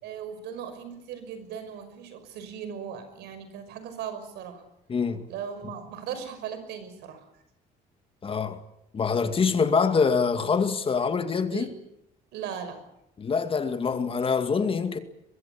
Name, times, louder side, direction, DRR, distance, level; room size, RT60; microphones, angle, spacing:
voice 1, 0.0-4.6 5.3-7.2 11.5-11.7 12.3-12.8, right 8 dB, 80° right, 5.9 m, -38 dB
voice 2, 4.9-5.2 8.2-8.6 8.9-11.7 13.2-15.0, left 5 dB, 30° left, 2.2 m, -25 dB
23.5 x 22.0 x 8.5 m
cardioid pair, 110°, 17 cm